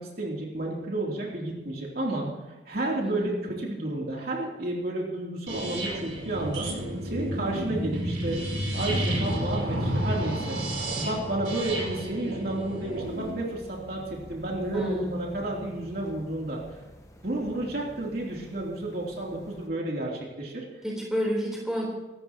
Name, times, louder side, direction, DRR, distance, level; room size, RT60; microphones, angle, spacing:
voice 1, 0.0-2.3 2.7-10.6 11.0-16.6 17.2-20.6, right 2 dB, 50° right, -3 dB, 3.2 m, -31 dB
voice 2, 3.0-3.4 14.7-15.3 20.8-21.9, equal, 5° right, -4 dB, 3.9 m, -30 dB
sound 1, 5.5-13.3, right 1 dB, 80° right, 4.6 m, -31 dB
sound 2, 13.0-19.7, left 1 dB, 15° left, 1.2 m, -48 dB
24.5 x 13.5 x 3.0 m, 1.1 s
head